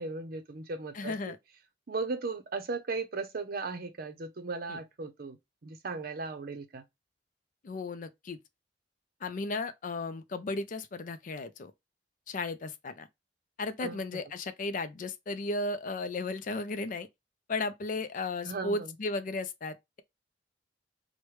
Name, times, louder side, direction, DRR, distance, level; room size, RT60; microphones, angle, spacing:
voice 1, 0.0-1.3 1.9-5.4 5.6-6.8 13.8-14.0 18.4-18.9, right 3 dB, 55° right, 0.6 m, -37 dB
voice 2, 0.9-1.4 4.7-4.8 7.6-8.4 9.2-11.7 12.3-13.1 13.6-17.1 17.5-20.0, left 3 dB, 45° left, 0.4 m, -35 dB
4.8 x 2.2 x 3.1 m
head